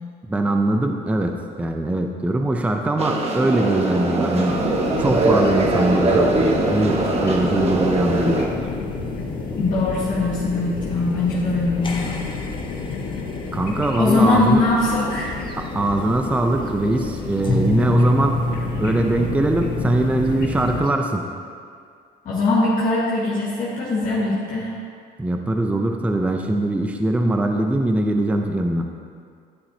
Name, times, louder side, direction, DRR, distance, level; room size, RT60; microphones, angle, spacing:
voice 1, 0.3-4.6 5.0-8.4 13.5-14.6 15.7-18.4 18.8-21.3 25.2-28.9, right 1 dB, 10° right, 3 dB, 0.5 m, -21 dB
sound 1, 3.0-8.5, right 2 dB, 40° right, 1.0 m, -21 dB
sound 2, 4.5-20.8, left 4 dB, 70° left, 1.1 m, -30 dB
sound 3, 8.1-20.9, left 1 dB, 30° left, 0.9 m, -31 dB
voice 2, 9.6-12.2 14.0-15.3 22.2-24.7, left 2 dB, 50° left, -6 dB, 1.5 m, -21 dB
11.0 x 6.9 x 2.7 m, 2.2 s
cardioid pair, 110°, 17 cm